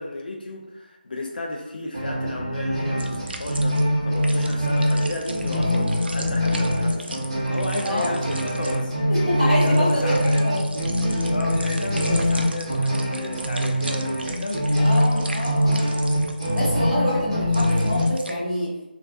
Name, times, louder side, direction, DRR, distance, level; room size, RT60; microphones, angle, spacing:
voice 1, 0.0-7.1 7.4-9.1 9.4-10.4 11.3-14.9, left 2 dB, 60° left, 0 dB, 0.3 m, -32 dB
sound 1, 1.9-18.0, equal, 30° right, 0.7 m, -23 dB
sound 2, 3.0-3.9 4.1-18.3, right 2 dB, 85° right, 0.3 m, -39 dB
voice 2, 7.8-8.2 9.1-10.1 10.4-10.6 14.7-15.8 16.5-18.7, equal, ahead, -22 dB, 0.9 m, -26 dB
2.3 x 2.1 x 2.5 m, 1.0 s
figure-of-eight pair, 175°, 6 cm